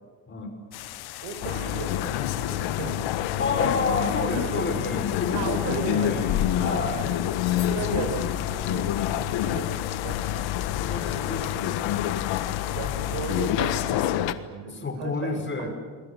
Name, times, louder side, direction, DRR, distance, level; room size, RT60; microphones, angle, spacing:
sound 1, 0.7-13.5, left 16 dB, 55° left, 0.8 m, -41 dB
voice 1, 1.2-3.8 4.2-5.1 5.3-6.2 6.6-7.1 7.6-10.5 12.7-15.7, right 5 dB, 70° right, 7 dB, 5.6 m, -36 dB
sound 2, 1.4-14.3, left 11 dB, 75° left, 1.5 m, -27 dB
voice 2, 3.4-7.0 10.8-11.7 14.7-15.7, left 3 dB, 25° left, 4 dB, 6.0 m, -30 dB
28.5 x 22.5 x 7.5 m, 1.5 s
cardioid pair, 115°, 45 cm